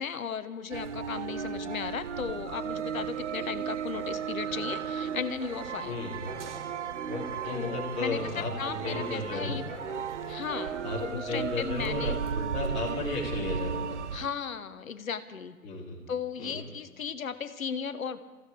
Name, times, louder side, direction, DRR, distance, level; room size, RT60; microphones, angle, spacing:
voice 1, 0.0-6.0 7.5-9.6 10.2-12.1 14.1-15.6 16.1-18.2, left 6 dB, 60° left, 13 dB, 1.1 m, -36 dB
sound 1, 0.7-14.3, right 7 dB, 50° right, 0.7 m, -35 dB
sound 2, 3.9-10.7, right 2 dB, 15° right, 2.1 m, -46 dB
voice 2, 5.8-6.2 7.1-9.6 10.8-14.0 15.6-16.0 16.4-16.6, left 3 dB, 15° left, -6 dB, 2.9 m, -34 dB
26.5 x 15.5 x 3.4 m, 1.3 s
figure-of-eight pair, 135°, 47 cm